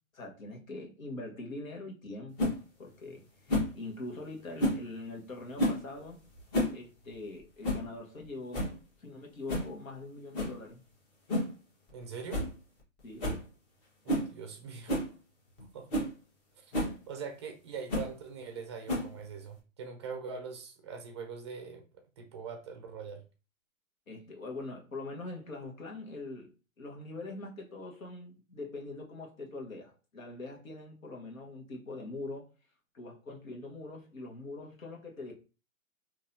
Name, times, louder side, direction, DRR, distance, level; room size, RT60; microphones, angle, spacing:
voice 1, 0.1-6.2 6.7-8.7 9.0-10.8 13.0-13.4 24.1-32.5 32.9-35.3, left 2 dB, 75° left, 1.4 m, -43 dB
sound 1, 2.4-2.6 3.5-3.8 4.6-4.9 5.6-5.9 6.4-6.8 7.1-7.2 7.6-7.9 8.2-8.3 8.5-8.8 9.5-9.7 10.3-10.6 11.3-11.6 11.9-12.0 12.3-12.5 12.8-12.9 13.2-13.4 14.1-14.3 14.9-15.1 15.6-15.7 15.9-16.1 16.7-17.0 17.9-18.1 18.9-19.2, left 1 dB, 30° left, 1.4 m, -30 dB
voice 2, 11.9-12.4 14.0-15.0 15.7-15.9 16.6-16.7 17.1-23.2, right 5 dB, 20° right, 0.4 m, -42 dB
3.9 x 2.8 x 2.7 m
hypercardioid pair, 140°, 41 cm